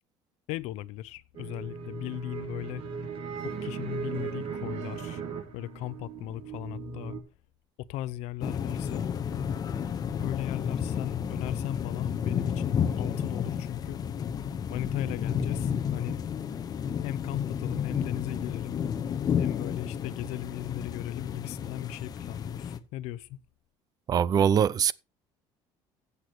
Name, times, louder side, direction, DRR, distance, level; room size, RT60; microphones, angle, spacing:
voice 1, 0.5-2.8 3.4-5.2 5.5-7.1 7.8-9.0 10.2-14.0 14.7-16.2 17.0-18.8 19.4-23.4, left 14 dB, 75° left, 0.8 m, -37 dB
sound 1, 1.3-7.2, right 5 dB, 55° right, 3.5 m, -37 dB
sound 2, 8.4-22.8, left 8 dB, 35° left, 1.2 m, -31 dB
voice 2, 24.1-24.9, right 8 dB, 35° right, 0.6 m, -22 dB
15.5 x 8.2 x 3.1 m
cardioid pair, 130°, 11 cm